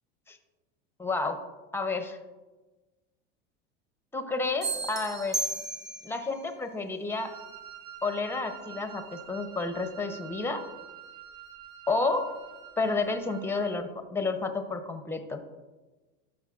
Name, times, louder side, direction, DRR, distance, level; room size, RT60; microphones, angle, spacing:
voice 1, 1.0-1.4 1.7-2.2 4.1-5.5 6.0-7.3 8.0-10.6 11.9-12.3 12.8-15.4, left 3 dB, 5° left, 7 dB, 0.7 m, -30 dB
sound 1, 4.6-6.3, right 2 dB, 10° right, 1.5 m, -33 dB
Wind instrument woodwind instrument, 7.1-13.8, right 10 dB, 45° right, 1.5 m, -47 dB
12.5 x 6.4 x 2.4 m, 1.2 s
supercardioid pair, 120°, 32 cm